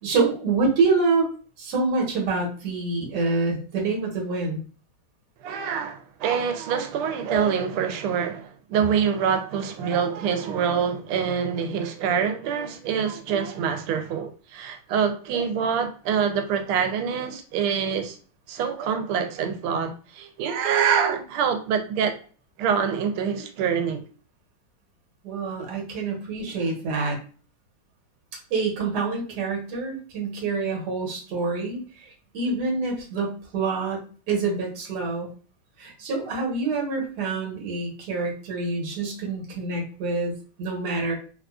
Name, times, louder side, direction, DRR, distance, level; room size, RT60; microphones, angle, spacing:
voice 1, 0.0-1.3 1.6-4.6 25.2-27.2 28.5-31.8 32.3-34.0 34.3-35.3 35.8-41.1, right 3 dB, 55° right, 1.6 m, -26 dB
voice 2, 5.4-18.2 18.5-22.2 22.6-24.0, right 7 dB, 85° right, 1.5 m, -25 dB
4.0 x 2.4 x 2.3 m
omnidirectional pair, 2.3 m